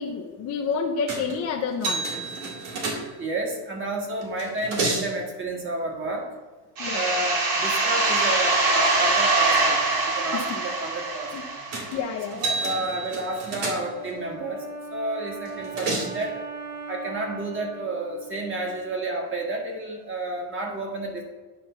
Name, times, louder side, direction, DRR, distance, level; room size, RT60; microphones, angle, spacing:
voice 1, 0.0-2.1 6.8-7.0 10.3-10.4 11.3-11.4 11.9-12.4, left 5 dB, 35° left, 0 dB, 0.5 m, -29 dB
sound 1, 1.1-1.4 1.8-3.4 4.2-5.1 11.7-12.0 12.3-14.2 15.5-16.2, right 3 dB, 80° right, 2.7 m, -30 dB
voice 2, 3.2-6.3 6.9-11.6 12.3-16.4 16.9-21.2, right 2 dB, 25° right, 0 dB, 1.6 m, -31 dB
sound 2, 6.8-12.3, right 3 dB, 45° right, 2.3 m, -23 dB
Wind instrument woodwind instrument, 13.6-19.0, right 3 dB, 5° right, 1.1 m, -39 dB
9.8 x 3.4 x 6.6 m, 1.3 s
cardioid pair, 155°, 49 cm